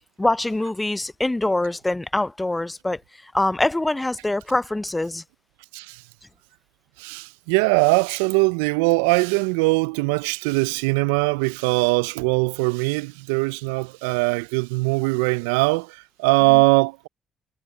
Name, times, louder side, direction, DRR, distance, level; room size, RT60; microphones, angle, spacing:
voice 1, 0.2-5.2 16.5-16.6, left 2 dB, 15° left, 0.5 m, -24 dB
voice 2, 7.0-17.1, right 27 dB, 80° right, 0.4 m, -21 dB
hypercardioid pair, 45°, 0 cm